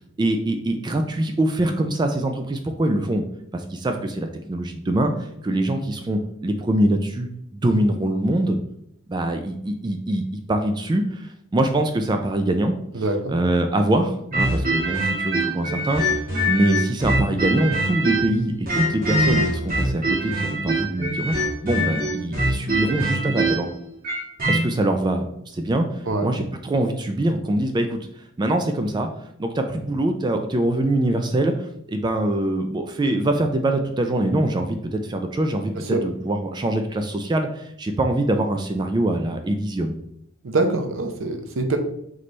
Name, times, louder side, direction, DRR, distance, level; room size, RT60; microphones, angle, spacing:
voice 1, 0.2-3.2 3.5-8.6 9.1-10.2 10.5-12.7 13.3-16.0 16.5-21.3 21.6-23.7 24.5-25.3 25.5-28.0 28.4-29.1 29.4-40.0, right 1 dB, 20° right, 6 dB, 0.3 m, -23 dB
voice 2, 12.9-13.3 26.1-26.3 35.8-36.0 40.4-41.8, right 2 dB, 65° right, 5 dB, 0.6 m, -24 dB
sound 1, 14.3-18.4 18.7-24.6, right 1 dB, 45° right, 1.5 m, -23 dB
4.2 x 3.2 x 3.1 m, 0.74 s
head